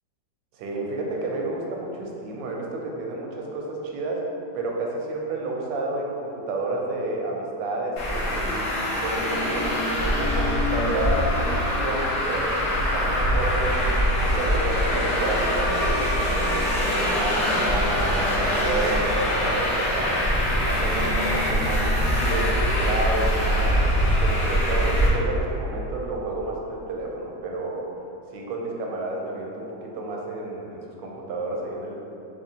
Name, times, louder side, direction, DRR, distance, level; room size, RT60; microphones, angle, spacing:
voice 1, 0.5-4.2 4.5-8.7 9.0-15.7 16.2-20.2 20.5-27.9 28.3-32.0, right 2 dB, 90° right, -1 dB, 1.3 m, -30 dB
Traffic noise roadway noise, 8.0-25.1, equal, 65° left, 1.3 m, -23 dB
4.3 x 2.9 x 2.7 m, 2.8 s
omnidirectional pair, 1.9 m